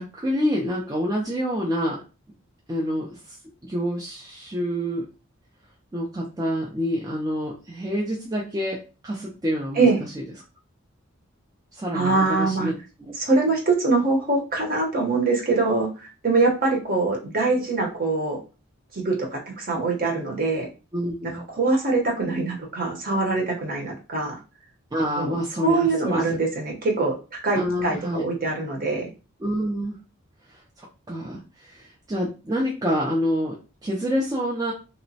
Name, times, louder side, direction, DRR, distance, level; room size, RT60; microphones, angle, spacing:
voice 1, 0.0-2.0 2.7-3.4 3.6-5.1 5.9-9.9 10.1-10.2 11.7-12.7 13.0-13.1 20.9-21.5 24.9-26.4 27.5-28.2 29.4-30.0 30.5-34.7, equal, 15° right, -3 dB, 0.3 m, -27 dB
voice 2, 11.9-12.7 13.2-18.4 18.9-20.7 21.3-24.4 25.2-29.1, right 3 dB, 40° right, 0 dB, 0.7 m, -23 dB
2.9 x 2.1 x 2.6 m, 0.32 s
head